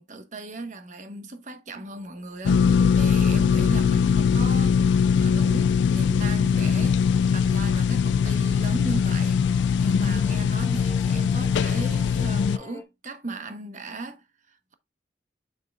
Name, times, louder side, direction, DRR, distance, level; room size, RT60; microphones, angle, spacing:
voice 1, 0.0-4.8 5.2-9.4 9.8-14.7, right 2 dB, 45° right, 1.1 m, -37 dB
sound 1, 1.7-12.8, left 1 dB, 20° left, 1.5 m, -48 dB
sound 2, 2.4-12.6, left 6 dB, 80° left, 0.3 m, -21 dB
7.3 x 6.4 x 2.4 m
head